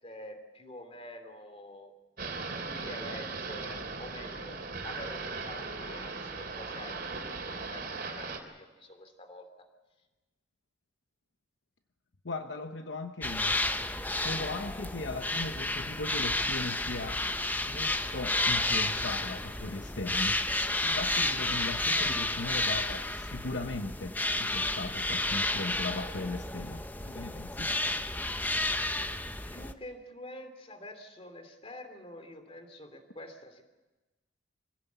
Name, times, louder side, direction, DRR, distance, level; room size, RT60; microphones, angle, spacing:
voice 1, 0.0-1.9 2.6-9.7 29.5-33.6, left 1 dB, 30° left, 7 dB, 2.8 m, -47 dB
sound 1, 2.2-8.4, right 4 dB, 50° right, 3.3 m, -38 dB
voice 2, 12.2-13.6 14.2-17.2 17.6-20.5 20.8-27.8, left 2 dB, 70° left, 6 dB, 1.0 m, -38 dB
sound 2, 13.2-29.7, left 2 dB, 10° left, 0.8 m, -31 dB
24.5 x 16.5 x 8.2 m, 1.2 s
head